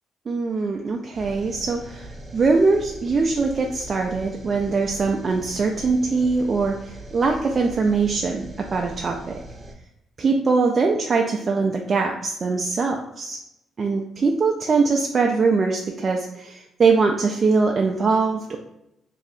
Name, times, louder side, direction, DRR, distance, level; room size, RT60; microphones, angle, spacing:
voice 1, 0.3-9.4 10.2-13.4 13.8-18.6, right 4 dB, 40° right, 1 dB, 0.4 m, -22 dB
sound 1, 1.1-9.8, right 1 dB, 25° right, 0.7 m, -40 dB
2.7 x 2.5 x 4.0 m, 0.83 s
cardioid pair, 90°, 0 cm